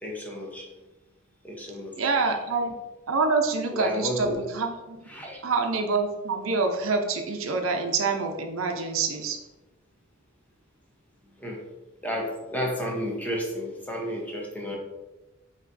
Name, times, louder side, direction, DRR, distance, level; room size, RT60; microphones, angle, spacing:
voice 1, 0.0-0.7 1.4-2.1 3.7-4.4 5.1-5.4 11.4-11.6 12.0-14.8, equal, 10° left, -2 dB, 0.9 m, -32 dB
voice 2, 2.0-2.7 3.1-5.0 5.4-9.4, right 4 dB, 85° right, 4 dB, 0.6 m, -26 dB
5.6 x 3.0 x 2.6 m, 1.1 s
head